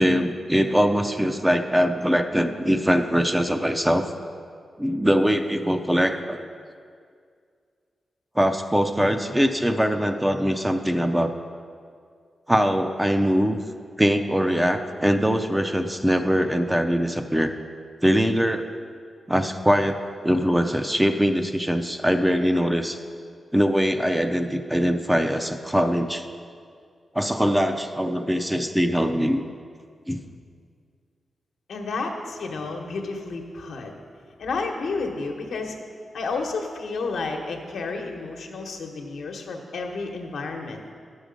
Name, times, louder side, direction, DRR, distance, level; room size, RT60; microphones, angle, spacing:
voice 1, 0.0-4.1 4.8-6.4 8.4-11.3 12.5-13.6 14.0-17.5 18.0-18.7 19.3-20.0 20.2-23.0 23.5-26.2 27.1-29.4 30.1-30.2, equal, 10° right, 7 dB, 0.5 m, -22 dB
voice 2, 31.7-33.9 34.4-35.7 36.1-40.8, left 3 dB, 85° left, 2 dB, 1.0 m, -31 dB
10.0 x 6.3 x 5.1 m, 2.2 s
wide cardioid pair, 105°, 0 cm